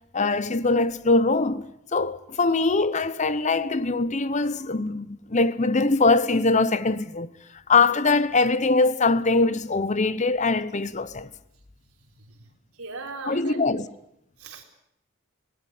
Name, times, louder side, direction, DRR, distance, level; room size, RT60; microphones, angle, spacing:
voice 1, 0.1-1.6 1.9-7.3 7.7-11.3 13.3-13.8, left 3 dB, 35° left, 0.8 m, -22 dB
voice 2, 12.0-13.9 14.4-14.6, right 3 dB, 80° right, 3.9 m, -40 dB
18.5 x 18.0 x 9.5 m
head